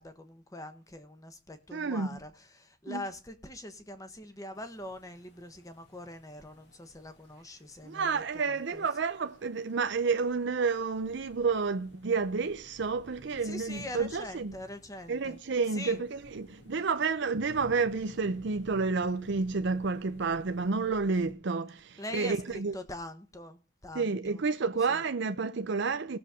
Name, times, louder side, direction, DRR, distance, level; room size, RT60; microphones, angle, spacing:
voice 1, 0.0-8.9 13.4-15.4 15.7-16.0 22.0-24.4 24.9-25.0, left 1 dB, 15° left, 1.2 m, -43 dB
voice 2, 1.7-2.2 2.9-3.0 7.8-14.5 15.1-22.8 23.9-26.2, right 4 dB, 65° right, 0.6 m, -30 dB
sound 1, 4.5-21.3, left 1 dB, 60° left, 2.4 m, -55 dB
19.0 x 7.0 x 3.7 m
head